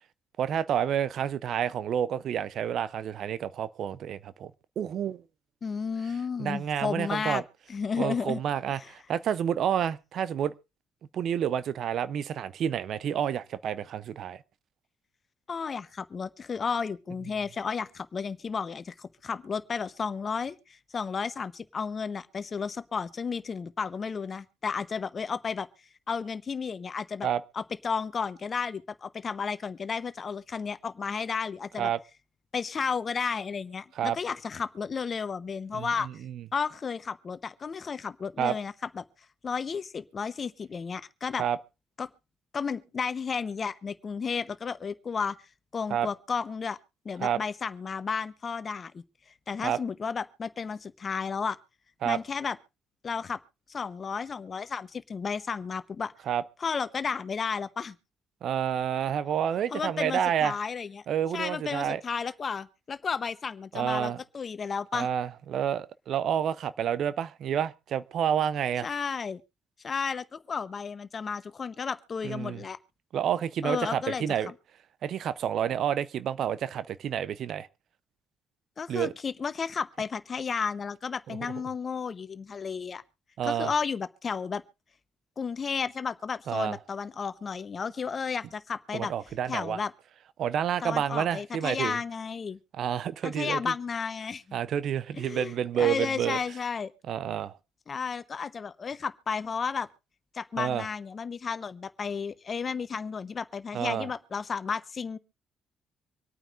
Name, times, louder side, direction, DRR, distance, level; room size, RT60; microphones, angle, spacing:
voice 1, 0.4-4.5 4.8-5.2 6.4-7.4 8.0-10.5 11.1-14.4 27.2-27.4 31.8-32.0 34.0-34.2 35.7-35.9 36.2-36.4 38.4-38.5 41.4-41.6 45.9-46.1 47.2-47.4 49.6-49.8 52.0-52.2 56.3-56.4 58.4-60.5 61.1-62.0 63.7-64.2 64.9-68.9 72.2-72.6 73.1-74.5 75.0-77.7 78.9-79.1 81.3-81.4 83.4-83.7 86.5-86.8 88.9-89.8 90.4-92.0 92.7-93.6 94.5-96.4 97.1-97.6 100.6-100.9 103.7-104.1, right 9 dB, 65° right, 0.6 m, -29 dB
voice 2, 5.6-7.4 7.7-8.4 8.8-8.9 15.5-25.7 26.1-27.3 27.5-31.9 32.5-36.2 36.5-39.0 39.4-41.4 42.0-42.1 42.5-45.4 45.7-46.8 47.0-49.0 49.5-51.6 52.0-52.6 53.0-53.4 53.7-56.1 56.6-58.0 59.7-61.0 61.3-65.1 68.8-69.4 69.8-72.8 73.6-74.5 78.8-83.0 83.4-84.6 85.4-89.1 89.5-89.9 90.8-92.6 93.2-94.6 95.2-96.9 97.9-99.9 100.3-105.2, left 5 dB, 45° left, 0.9 m, -33 dB
25.5 x 9.0 x 2.5 m
hypercardioid pair, 50°, 0 cm